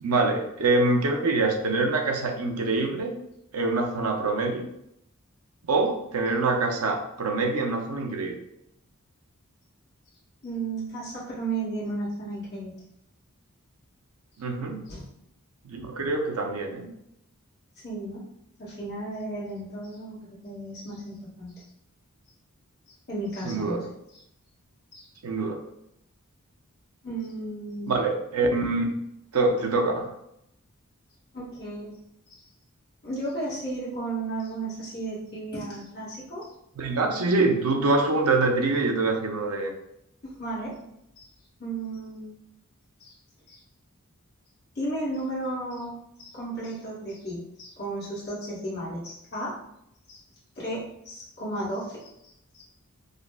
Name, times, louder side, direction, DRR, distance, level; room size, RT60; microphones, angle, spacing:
voice 1, 0.0-3.2 3.5-4.7 5.7-8.4 14.4-14.8 15.6-16.9 23.4-23.8 25.2-25.6 27.9-28.9 29.3-30.1 36.8-39.7, right 3 dB, 90° right, 3 dB, 0.6 m, -25 dB
voice 2, 10.4-12.8 14.9-15.1 17.8-18.2 18.6-21.5 23.1-23.9 24.9-25.1 27.0-27.9 31.3-31.9 33.0-36.5 40.2-40.8 41.2-41.3 41.6-42.3 43.0-43.1 43.5-43.6 44.7-49.6 50.1-50.2 50.5-52.6, right 2 dB, 50° left, -7 dB, 1.2 m, -34 dB
5.0 x 2.0 x 2.2 m, 0.78 s
head